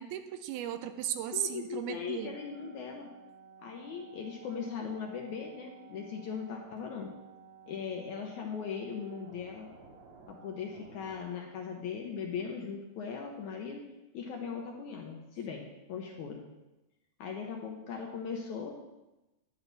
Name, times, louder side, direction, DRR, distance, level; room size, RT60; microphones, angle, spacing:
voice 1, 0.0-2.3, right 11 dB, 85° right, 9 dB, 2.6 m, -36 dB
voice 2, 1.3-3.1 3.6-7.1 7.7-9.7 10.3-13.9 14.1-16.4 17.2-18.8, left 6 dB, 70° left, 1 dB, 2.0 m, -39 dB
sound 1, 2.2-11.2, right 6 dB, 60° right, 2.2 m, -55 dB
10.5 x 10.0 x 4.1 m, 1.0 s
omnidirectional pair, 4.4 m